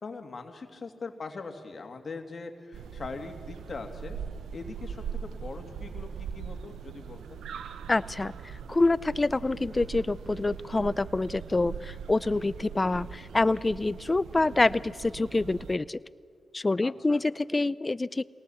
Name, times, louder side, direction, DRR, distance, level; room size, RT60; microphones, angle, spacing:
voice 1, 0.0-4.2 4.5-7.4 16.8-17.2, left 4 dB, 50° left, 5 dB, 2.5 m, -41 dB
sound 1, 2.7-15.8, right 7 dB, 90° right, 0.8 m, -41 dB
voice 2, 7.9-16.0 16.5-18.2, left 2 dB, 30° left, 19 dB, 0.5 m, -26 dB
23.5 x 18.5 x 7.2 m, 2.3 s
cardioid pair, 60°, 0 cm